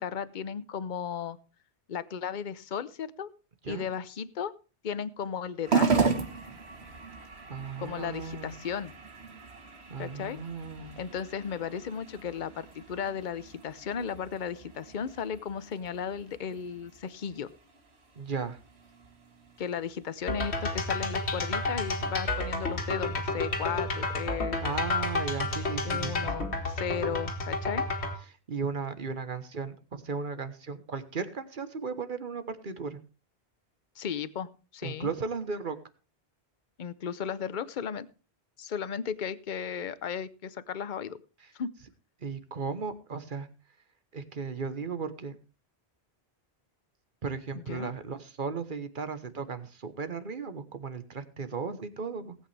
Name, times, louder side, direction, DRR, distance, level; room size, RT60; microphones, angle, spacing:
voice 1, 0.0-1.4 1.9-3.3 3.7-4.5 4.8-6.1 7.8-8.9 10.0-10.4 11.0-17.5 19.6-24.6 25.8-27.9 34.0-35.1 36.8-38.1 38.6-41.2 41.5-41.7 47.6-47.9, left 7 dB, 50° left, 15 dB, 0.8 m, -35 dB
sound 1, 5.6-24.3, right 5 dB, 75° right, 1.8 m, -36 dB
voice 2, 7.5-8.6 9.9-11.0 18.1-18.6 24.3-26.4 27.1-27.2 28.2-33.0 34.8-35.8 41.4-41.5 42.2-43.5 44.1-45.4 47.2-52.4, right 5 dB, 50° right, 11 dB, 1.3 m, -36 dB
sound 2, 20.3-28.2, left 2 dB, 85° left, 2.2 m, -31 dB
18.5 x 8.4 x 3.4 m, 0.33 s
omnidirectional pair, 1.1 m